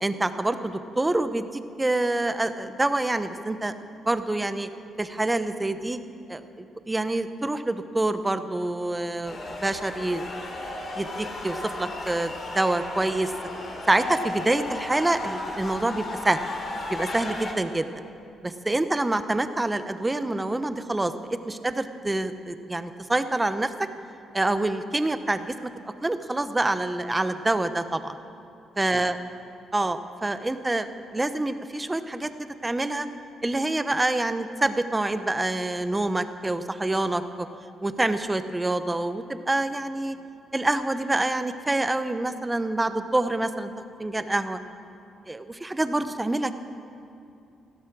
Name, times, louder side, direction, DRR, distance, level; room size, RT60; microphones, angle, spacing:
voice 1, 0.0-3.7 4.1-4.7 5.0-6.0 6.3-10.2 11.0-13.3 13.9-16.4 16.9-17.9 18.4-21.1 21.5-23.9 24.3-25.5 26.0-28.2 28.8-29.1 29.7-32.3 32.6-33.1 33.4-37.5 37.8-40.2 40.5-43.7 44.0-44.6 45.3-46.5, right 2 dB, 15° right, 10 dB, 0.9 m, -26 dB
sound 1, 9.2-17.5, left 2 dB, 45° left, 2.8 m, -35 dB
15.5 x 12.5 x 6.2 m, 2.7 s
cardioid pair, 90°, 0 cm